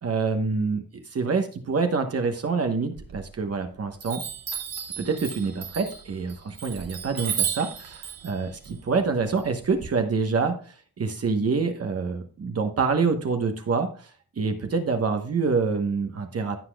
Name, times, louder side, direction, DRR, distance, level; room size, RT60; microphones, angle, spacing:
voice 1, 0.0-4.2 5.0-14.1 14.4-16.6, right 4 dB, 45° right, 5 dB, 1.1 m, -26 dB
Chime, 3.0-3.6 4.0-9.9, right 8 dB, 90° right, 2.4 m, -34 dB
16.5 x 5.8 x 2.3 m, 0.43 s
wide cardioid pair, 140°, 34 cm